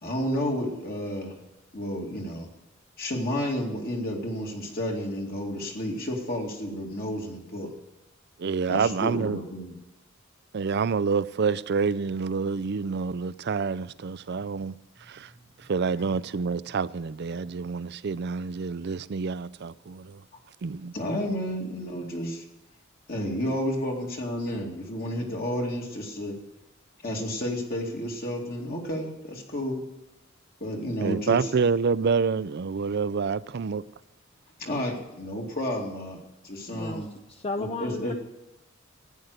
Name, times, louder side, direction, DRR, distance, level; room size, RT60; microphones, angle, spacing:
voice 1, 0.0-1.4 1.7-2.5 3.0-7.7 8.7-9.8 20.9-22.4 23.1-26.4 27.0-29.8 30.6-31.5 34.6-36.2 36.4-37.1 37.6-38.1, equal, 50° left, 2.5 m, -31 dB
voice 2, 8.4-9.4 10.5-15.3 15.6-20.2 20.6-20.9 31.0-33.8, right 5 dB, 55° right, 0.5 m, -27 dB
voice 3, 36.7-38.1, left 3 dB, 30° left, 0.6 m, -34 dB
14.5 x 9.4 x 6.6 m
head